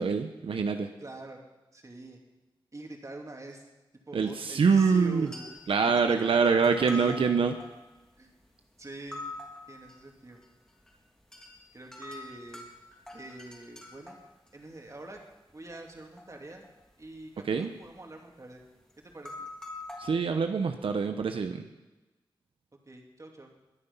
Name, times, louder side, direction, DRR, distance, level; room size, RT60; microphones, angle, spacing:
voice 1, 0.0-0.9 4.1-5.3 5.7-7.5 17.4-17.7 20.0-21.7, right 5 dB, 90° right, 6 dB, 0.9 m, -25 dB
voice 2, 1.0-1.4 1.7-2.2 2.7-3.7 4.1-5.6 5.9-6.4 6.9-7.2 8.2-8.4 8.8-9.2 9.7-10.4 11.7-12.6 13.1-14.2 14.5-15.2 15.5-16.7 17.0-18.6 19.1-19.4 22.9-23.5, right 2 dB, 35° right, 1 dB, 3.0 m, -45 dB
sound 1, 4.8-5.8 6.3-8.5 8.9-10.0 10.3-10.9 11.2-11.5 11.9-15.2 15.5-16.3 16.6-17.4 17.7-18.0 18.6-18.7 19.1-20.1, left 2 dB, 5° left, 3.7 m, -44 dB
22.0 x 9.8 x 5.6 m, 1.1 s
wide cardioid pair, 75°, 9 cm